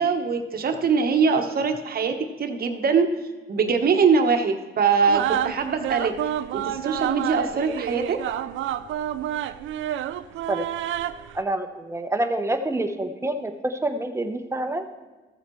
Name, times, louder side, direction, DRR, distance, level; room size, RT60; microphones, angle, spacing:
voice 1, 0.0-3.1 3.5-6.2 6.5-8.2, right 5 dB, 50° right, 6 dB, 1.1 m, -22 dB
sound 1, 5.0-11.4, right 11 dB, 80° right, 0.4 m, -29 dB
voice 2, 11.3-14.9, right 1 dB, 15° right, 7 dB, 0.9 m, -27 dB
14.5 x 7.3 x 3.1 m, 1.2 s
cardioid pair, 90°, 20 cm